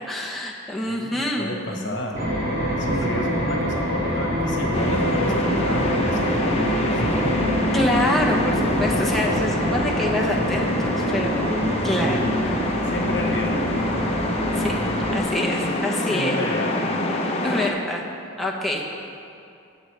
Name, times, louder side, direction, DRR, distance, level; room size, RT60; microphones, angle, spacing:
voice 1, 0.1-2.0 7.7-12.2 14.5-14.8 15.1-16.4 17.4-18.0 18.4-19.0, left 1 dB, ahead, -3 dB, 0.9 m, -26 dB
voice 2, 0.9-2.3 2.6-7.4 12.0-12.5 12.9-14.2 15.6-15.8 16.1-16.9, left 1 dB, 55° left, 1 dB, 1.3 m, -31 dB
sound 1, 2.1-15.2, equal, 45° right, 2.2 m, -25 dB
sound 2, 4.7-17.7, left 1 dB, 30° left, 0.8 m, -26 dB
19.5 x 7.3 x 3.4 m, 2.5 s
head